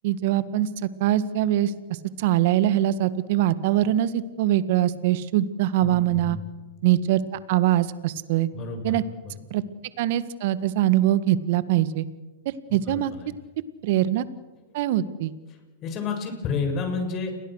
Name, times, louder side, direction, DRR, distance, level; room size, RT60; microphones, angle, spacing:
voice 1, 0.0-1.7 2.2-6.4 6.8-7.2 7.5-8.5 8.8-9.0 9.5-9.6 10.0-12.0 12.4-13.1 13.8-14.2 14.7-15.3, right 13 dB, 60° right, 15 dB, 1.7 m, -23 dB
voice 2, 5.8-6.4 8.5-9.3 12.7-13.3 15.8-17.4, left 5 dB, 35° left, 5 dB, 6.9 m, -31 dB
30.0 x 22.0 x 6.5 m, 1.1 s
hypercardioid pair, 115°, 0 cm